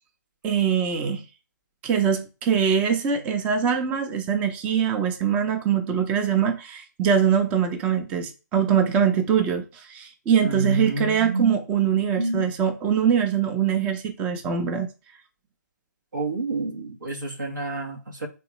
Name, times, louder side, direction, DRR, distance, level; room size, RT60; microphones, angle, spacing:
voice 1, 0.4-1.2 1.8-14.9, right 7 dB, 15° right, 0.5 m, -23 dB
voice 2, 10.4-11.6 12.2-12.5 16.1-18.3, right 2 dB, 90° right, 1.4 m, -28 dB
3.4 x 3.2 x 3.0 m
figure-of-eight pair, 150°, 10 cm